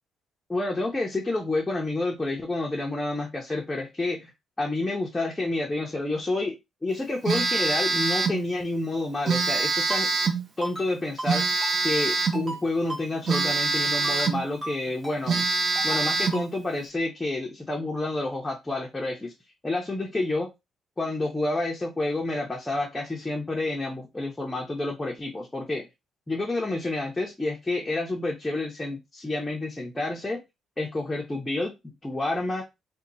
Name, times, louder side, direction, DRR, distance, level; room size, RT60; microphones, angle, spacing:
voice 1, 0.5-4.3 4.6-6.6 6.8-10.2 10.6-15.5 15.8-19.3 19.6-20.5 21.0-25.9 26.3-30.4 30.8-32.6, left 2 dB, 10° left, 0.6 m, -29 dB
Telephone, 7.3-8.4 9.3-10.5 11.3-12.5 13.3-14.5 14.9-15.0 15.3-16.5, right 4 dB, 45° right, 0.7 m, -25 dB
Ringtone, 9.9-10.0 10.6-10.9 11.2-11.3 11.6-11.7 12.3-12.6 12.9-13.0 13.3-13.5 14.0-14.3 14.6-14.7 15.0-15.2 15.7-16.0 16.3-16.5, right 1 dB, 15° right, 1.7 m, -35 dB
2.8 x 2.2 x 4.0 m
cardioid pair, 140°, 0 cm